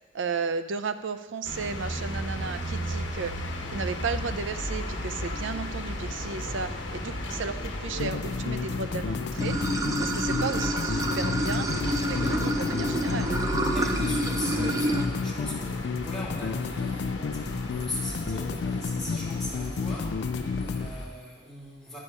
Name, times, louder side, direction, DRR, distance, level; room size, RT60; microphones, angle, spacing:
voice 1, 0.1-13.4, right 5 dB, 90° right, 11 dB, 0.5 m, -34 dB
sound 1, 1.4-21.1, equal, 80° left, 1.2 m, -35 dB
sound 2, 8.0-20.9, left 5 dB, 60° left, 0.3 m, -32 dB
Water / Sink (filling or washing), 9.4-15.1, right 1 dB, 20° right, 0.6 m, -28 dB
voice 2, 12.1-12.4 13.7-20.2 20.5-22.0, left 1 dB, ahead, -7 dB, 2.8 m, -39 dB
10.0 x 6.4 x 5.4 m, 1.2 s
head